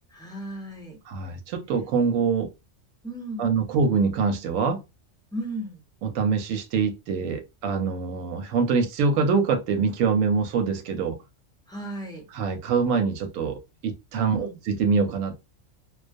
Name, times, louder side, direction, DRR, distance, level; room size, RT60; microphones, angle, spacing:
voice 1, 0.1-1.0 3.0-3.6 5.3-5.8 11.7-12.2 14.3-14.6, right 1 dB, 5° left, 0.4 m, -35 dB
voice 2, 1.1-2.5 3.4-4.8 6.0-11.2 12.3-15.4, right 5 dB, 90° right, 1.0 m, -24 dB
2.3 x 2.2 x 2.4 m
omnidirectional pair, 1.3 m